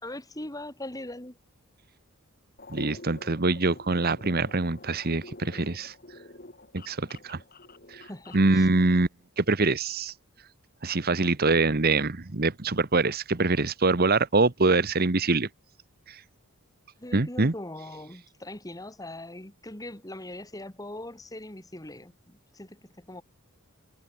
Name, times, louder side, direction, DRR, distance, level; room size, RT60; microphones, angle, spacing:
voice 1, 0.0-1.4 5.5-5.8 8.1-8.7 17.0-23.2, left 1 dB, 15° left, 2.2 m, -41 dB
sound 1, 2.6-8.5, left 2 dB, 40° left, 4.3 m, -48 dB
voice 2, 2.7-5.9 6.7-7.4 7.9-8.0 8.3-9.1 9.4-10.1 10.8-15.5 16.1-16.2 17.1-17.5, right 3 dB, 45° right, 1.1 m, -24 dB
head